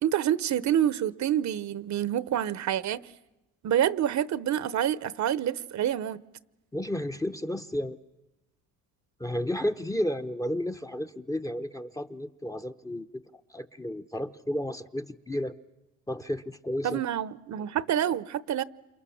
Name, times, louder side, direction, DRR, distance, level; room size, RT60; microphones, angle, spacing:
voice 1, 0.0-3.0 3.6-6.2 16.8-18.6, right 10 dB, 55° right, 17 dB, 1.0 m, -27 dB
voice 2, 6.7-8.0 9.2-13.1 13.5-15.5 16.1-17.0, left 1 dB, 10° left, 11 dB, 0.9 m, -32 dB
28.5 x 27.5 x 7.2 m, 0.99 s
cardioid pair, 95°, 34 cm